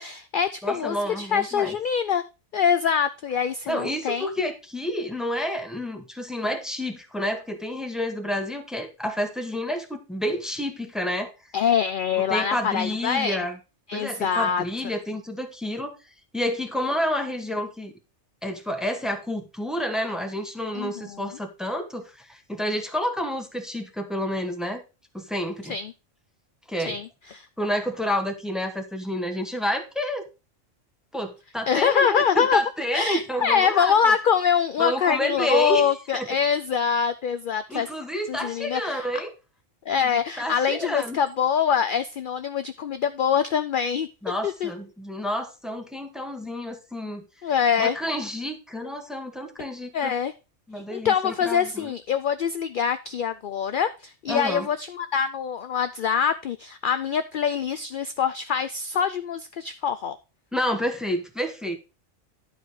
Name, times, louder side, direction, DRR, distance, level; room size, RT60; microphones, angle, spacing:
voice 1, 0.0-2.2 2.5-4.3 11.5-13.4 13.9-14.9 20.7-21.3 25.6-25.9 26.9-27.5 31.7-32.6 32.9-37.9 38.3-39.1 39.9-44.1 44.4-44.7 47.4-48.0 49.6-49.7 49.9-50.3 50.9-60.2, left 7 dB, 55° left, 0.6 m, -24 dB
voice 2, 0.6-1.8 3.7-11.3 12.3-13.6 13.9-16.0 16.3-17.9 18.4-24.8 25.1-25.8 26.7-27.0 27.6-30.3 31.1-34.1 34.8-36.3 37.7-39.3 39.9-41.2 44.2-47.2 47.8-50.2 50.7-51.9 54.3-54.7 60.5-61.8, equal, ahead, 1.2 m, -29 dB
11.0 x 4.9 x 4.8 m
omnidirectional pair, 1.3 m